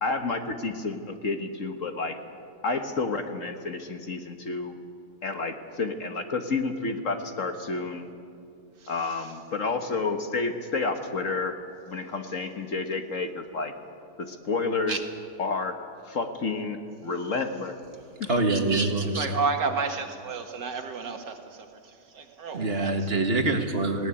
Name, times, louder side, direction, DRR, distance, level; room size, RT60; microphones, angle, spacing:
voice 1, 0.0-2.2 2.6-4.7 5.2-8.1 8.9-13.7 14.2-15.0 15.4-15.7 16.1-17.7 18.2-18.3, left 3 dB, 50° left, 6 dB, 1.5 m, -30 dB
voice 2, 18.3-19.3 22.5-24.1, right 2 dB, 35° right, 5 dB, 1.8 m, -25 dB
voice 3, 19.2-23.1, right 4 dB, 75° right, 5 dB, 2.2 m, -31 dB
20.0 x 18.0 x 9.8 m, 2.3 s
omnidirectional pair, 1.9 m